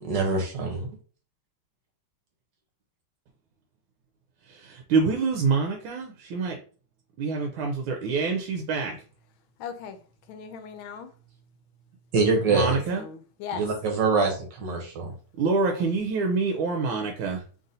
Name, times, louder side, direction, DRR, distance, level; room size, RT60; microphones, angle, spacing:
voice 1, 0.0-0.9 12.1-12.8 13.5-15.1, right 4 dB, 60° right, 1.5 m, -24 dB
voice 2, 4.5-6.6 7.2-9.0 12.5-13.0 15.4-17.4, right 4 dB, 80° right, 1.4 m, -26 dB
voice 3, 9.6-10.0 10.3-11.1 12.5-13.7 15.7-15.9, left 7 dB, 75° left, 1.4 m, -39 dB
3.9 x 3.6 x 2.7 m
omnidirectional pair, 2.3 m